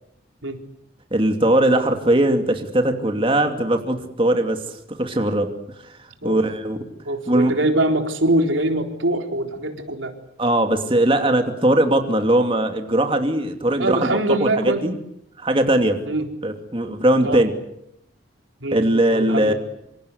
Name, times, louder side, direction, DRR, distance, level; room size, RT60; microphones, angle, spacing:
voice 1, 1.1-5.5 6.2-6.8 7.3-7.6 10.4-15.0 15.4-16.0 16.4-17.5 18.7-19.5, right 1 dB, 30° right, 5 dB, 2.7 m, -20 dB
voice 2, 7.1-10.1 13.8-14.8 16.1-16.2 17.2-17.4 18.6-18.8 19.1-19.5, right 1 dB, 85° right, 4 dB, 4.1 m, -23 dB
27.0 x 27.0 x 8.1 m, 0.77 s
head